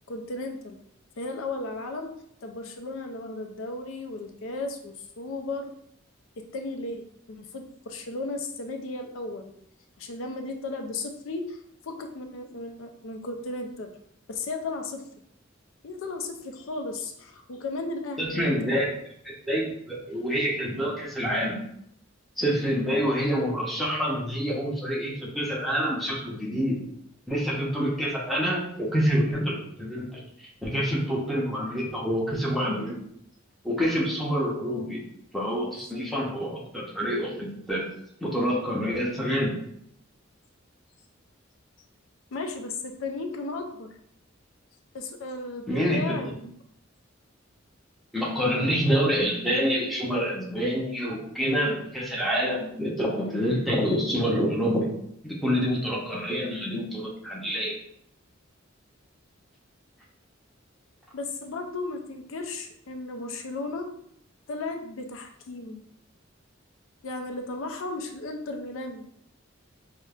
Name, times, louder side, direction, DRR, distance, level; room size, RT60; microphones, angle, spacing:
voice 1, 0.1-0.8 1.2-2.1 2.4-5.7 6.4-9.5 10.0-11.6 11.8-13.9 14.3-15.0 15.8-18.5 42.3-43.9 44.9-46.5 61.1-63.9 64.5-65.8 67.0-69.1, left 2 dB, 80° left, 4 dB, 0.4 m, -35 dB
voice 2, 18.2-18.8 19.2-19.6 19.9-21.6 22.4-26.8 27.3-33.0 33.6-35.0 35.3-37.8 38.2-39.5 45.7-46.3 48.1-54.9 55.2-57.8, equal, ahead, -4 dB, 0.7 m, -27 dB
5.0 x 2.1 x 2.4 m, 0.70 s
head